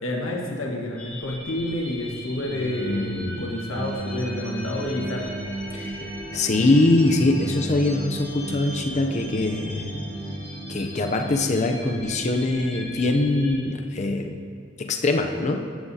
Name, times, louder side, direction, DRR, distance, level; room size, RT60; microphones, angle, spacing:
voice 1, 0.0-5.3, left 1 dB, 80° left, -1 dB, 1.4 m, -29 dB
sound 1, 1.0-13.6, left 1 dB, 10° left, 1.7 m, -41 dB
voice 2, 2.5-3.5 5.7-9.9 10.7-14.3 14.8-15.7, left 2 dB, 35° left, 4 dB, 0.5 m, -23 dB
sound 2, 3.7-11.9, right 1 dB, 45° right, 1.3 m, -35 dB
sound 3, 6.4-12.9, right 2 dB, 15° right, 0.6 m, -44 dB
15.0 x 7.9 x 2.8 m, 2.3 s
head